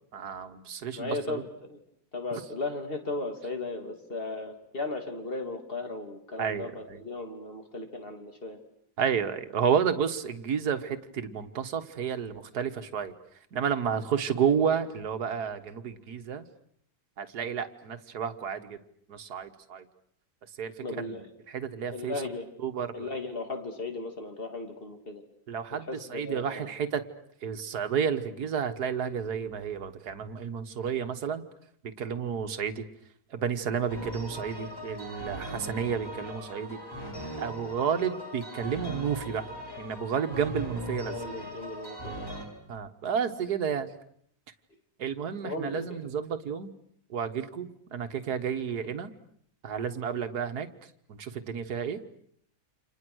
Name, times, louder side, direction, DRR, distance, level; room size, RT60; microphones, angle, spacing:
voice 1, 0.1-1.4 6.4-7.0 9.0-13.1 13.5-16.4 17.2-18.8 19.1-19.8 20.6-21.2 21.5-22.1 22.6-23.1 25.5-25.9 26.1-27.0 27.4-31.4 32.0-32.8 33.3-36.8 37.4-39.4 39.8-41.2 42.7-43.9 45.0-46.7 47.1-49.1 49.6-50.7 51.1-52.0, right 7 dB, 70° right, 7 dB, 1.9 m, -31 dB
voice 2, 0.9-1.8 2.1-8.6 20.8-21.3 21.9-22.4 22.9-25.2 25.8-26.7 41.0-42.4 45.4-46.0, left 3 dB, 35° left, 4 dB, 3.2 m, -36 dB
sound 1, 33.9-42.5, equal, 15° left, 5.3 m, -39 dB
30.0 x 27.0 x 6.4 m, 0.67 s
omnidirectional pair, 1.7 m